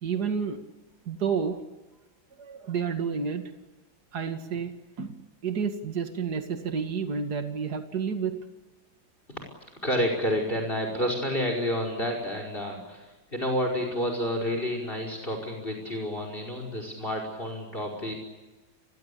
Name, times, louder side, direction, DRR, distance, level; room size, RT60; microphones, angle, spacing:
voice 1, 0.0-0.6 1.1-1.6 2.4-3.5 4.1-5.2 5.4-8.4, right 6 dB, 55° right, 6 dB, 2.7 m, -30 dB
voice 2, 9.8-18.1, equal, 25° left, 3 dB, 5.5 m, -29 dB
30.0 x 23.0 x 8.6 m, 1.1 s
omnidirectional pair, 2.1 m